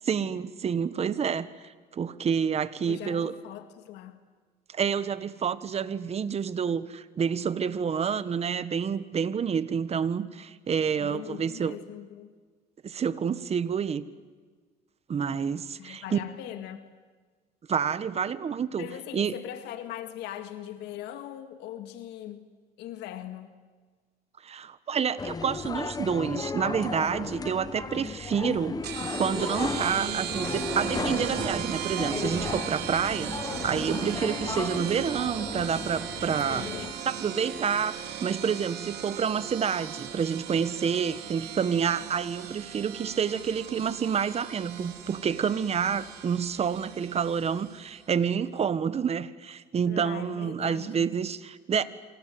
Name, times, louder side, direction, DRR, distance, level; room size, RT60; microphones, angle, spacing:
voice 1, 0.0-3.3 4.7-11.8 12.8-14.0 15.1-16.2 17.7-18.9 19.1-19.3 24.4-28.8 29.2-33.3 33.6-36.7 37.0-51.8, right 7 dB, 40° right, 1.4 m, -28 dB
voice 2, 2.9-4.2 11.0-12.4 15.8-16.8 18.8-22.5 22.8-23.6 36.5-37.0 49.9-51.2, left 12 dB, 90° left, 2.0 m, -40 dB
sound 1, 25.2-36.9, left 5 dB, 20° left, 0.8 m, -35 dB
sound 2, 28.8-48.0, right 9 dB, 75° right, 3.0 m, -37 dB
27.0 x 26.5 x 7.9 m
cardioid pair, 110°, 17 cm